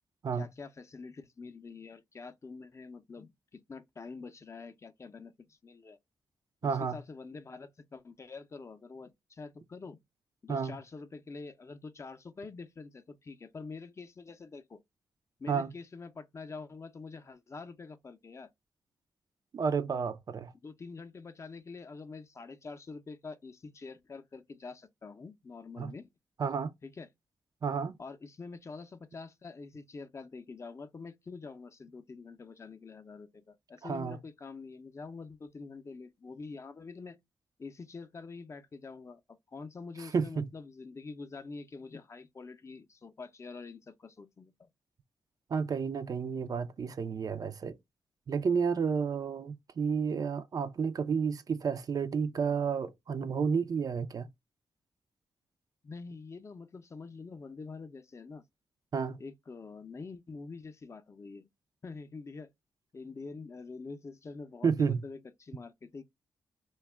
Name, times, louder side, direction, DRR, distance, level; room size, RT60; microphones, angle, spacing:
voice 1, 0.3-6.0 6.6-10.0 10.4-14.8 15.4-18.5 20.6-26.1 26.8-27.1 28.0-37.2 37.6-44.7 55.8-58.4 59.2-61.5 61.8-62.5 62.9-66.0, left 4 dB, 35° left, 0.5 m, -46 dB
voice 2, 6.6-7.0 10.5-10.8 15.5-15.7 19.5-20.5 25.8-25.9 26.4-26.7 27.6-28.0 33.8-34.2 40.1-40.5 45.5-47.8 48.3-54.3 58.9-59.2 64.6-65.0, right 6 dB, 50° right, 0.4 m, -31 dB
2.2 x 2.0 x 3.3 m
cardioid pair, 65°, 8 cm